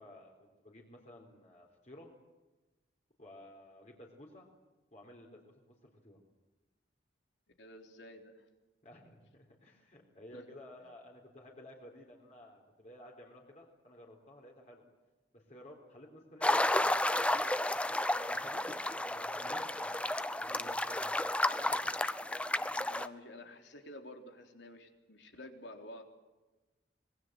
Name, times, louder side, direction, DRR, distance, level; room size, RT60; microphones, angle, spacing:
voice 1, 0.0-2.1 3.2-4.5 4.9-6.2 8.8-14.8 15.3-17.4 18.1-22.3, left 1 dB, 40° left, -1 dB, 4.1 m, -54 dB
voice 2, 7.6-8.5 10.3-10.4 22.8-26.0, left 1 dB, 80° left, 4 dB, 3.7 m, -50 dB
sound 1, 16.4-23.1, left 1 dB, 5° left, 0.7 m, -32 dB
26.0 x 21.5 x 7.7 m, 1.1 s
head